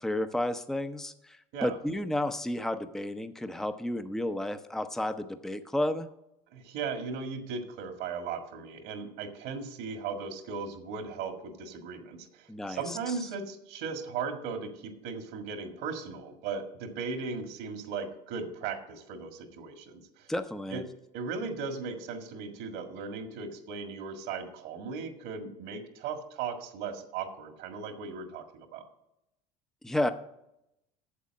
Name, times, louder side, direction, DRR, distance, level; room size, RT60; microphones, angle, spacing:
voice 1, 0.0-6.1 12.5-13.1 20.3-20.8 29.8-30.1, left 1 dB, ahead, 9 dB, 0.7 m, -32 dB
voice 2, 6.5-20.3 20.7-20.8 21.1-28.8, right 5 dB, 70° right, 6 dB, 1.8 m, -37 dB
8.3 x 7.2 x 7.5 m, 0.85 s
hypercardioid pair, 80°, 19 cm